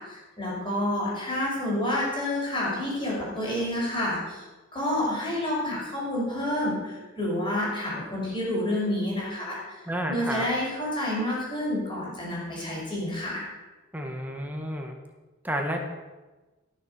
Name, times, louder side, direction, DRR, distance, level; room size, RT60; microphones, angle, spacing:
voice 1, 0.0-4.4 4.7-9.8 10.1-13.4, left 1 dB, 25° left, -5 dB, 5.8 m, -29 dB
voice 2, 9.9-10.4 13.9-14.9 15.4-15.9, equal, 10° right, 2 dB, 1.9 m, -30 dB
17.5 x 7.4 x 6.9 m, 1.2 s
head